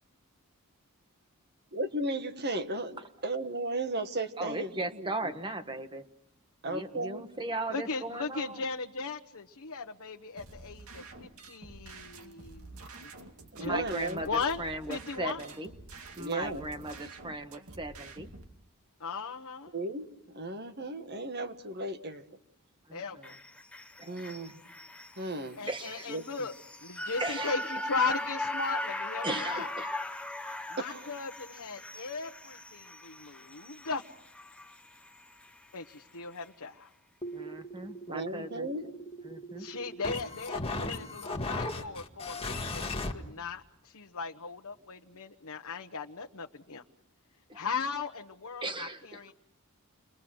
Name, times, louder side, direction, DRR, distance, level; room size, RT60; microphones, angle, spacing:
voice 1, 1.7-5.3 6.6-7.3 13.5-14.3 16.2-16.7 19.7-22.2 24.1-24.6 25.2-25.6 26.1-26.2 30.8-31.1 38.1-38.8, right 2 dB, 50° right, 8 dB, 1.7 m, -35 dB
voice 2, 4.4-6.0 6.6-8.6 13.6-15.7 16.2-18.3 22.9-23.4 24.0-24.2 25.7-26.1 27.2-27.6 29.2-30.0 37.3-38.7 39.2-39.7 47.5-47.6 48.6-49.2, right 2 dB, 20° right, 8 dB, 1.4 m, -37 dB
voice 3, 7.7-12.6 13.6-13.9 14.2-15.4 19.0-19.7 22.9-23.3 25.6-26.5 26.8-29.7 30.7-34.0 35.7-36.9 39.6-46.8 47.5-49.3, left 4 dB, 75° left, 2 dB, 1.1 m, -37 dB
sound 1, 10.4-18.4, right 3 dB, 75° right, 2.4 m, -49 dB
sound 2, 23.2-35.6 35.9-36.0, left 1 dB, 5° left, 0.9 m, -39 dB
sound 3, 37.2-43.1, left 2 dB, 25° left, 1.8 m, -37 dB
29.5 x 23.0 x 6.3 m, 0.79 s
head